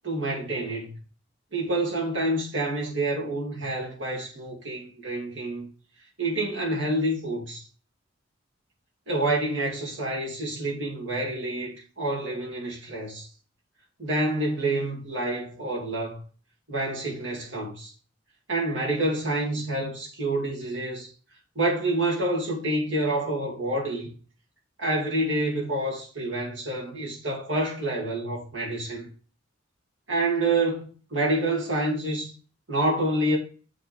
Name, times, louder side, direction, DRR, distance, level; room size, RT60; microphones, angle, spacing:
voice 1, 0.0-1.0 1.5-5.7 6.2-7.6 9.1-13.3 14.0-16.2 16.7-17.9 18.5-21.1 21.6-24.1 24.8-29.1 30.1-32.3 32.7-33.4, right 1 dB, 65° right, 2.6 m, -28 dB
7.7 x 3.7 x 4.3 m
head